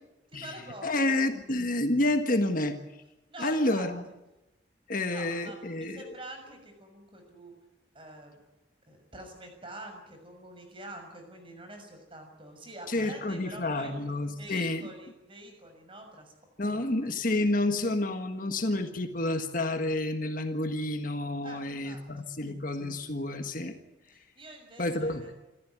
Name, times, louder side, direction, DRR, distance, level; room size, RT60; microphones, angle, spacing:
voice 1, 0.3-1.1 3.3-3.9 5.1-7.5 7.9-8.3 8.9-13.9 14.3-16.3 16.7-17.2 21.4-22.4 24.1-25.3, right 1 dB, 30° right, 4 dB, 6.5 m, -46 dB
voice 2, 0.8-2.8 3.4-4.0 4.9-6.1 12.9-14.9 16.6-23.7 24.8-25.2, left 2 dB, 45° left, 6 dB, 1.6 m, -29 dB
26.5 x 14.5 x 9.7 m, 0.99 s
head